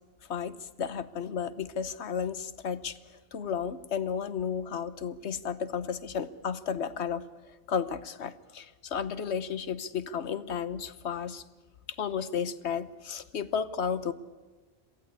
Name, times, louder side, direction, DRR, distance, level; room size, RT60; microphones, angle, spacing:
voice 1, 0.3-3.0 3.3-7.2 7.7-11.4 12.0-14.1, left 7 dB, 85° left, 13 dB, 1.3 m, -33 dB
23.0 x 15.5 x 8.4 m, 1.4 s
omnidirectional pair, 1.1 m